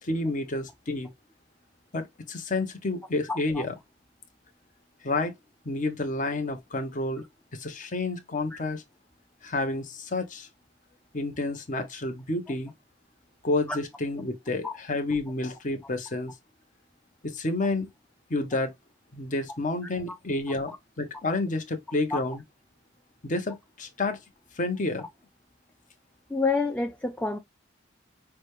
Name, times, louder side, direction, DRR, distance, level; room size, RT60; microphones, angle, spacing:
voice 1, 0.0-1.1 1.9-3.8 5.0-5.3 5.6-7.2 7.5-8.8 9.4-10.5 11.1-12.7 13.4-16.4 17.2-17.9 18.3-18.7 19.1-22.4 23.2-24.2 24.6-25.1, left 2 dB, 40° left, 0.9 m, -30 dB
voice 2, 3.3-3.6 8.5-8.6 13.7-13.8 14.6-14.7 22.1-22.2 26.3-27.4, left 3 dB, 5° left, 0.5 m, -28 dB
6.1 x 2.2 x 3.2 m
head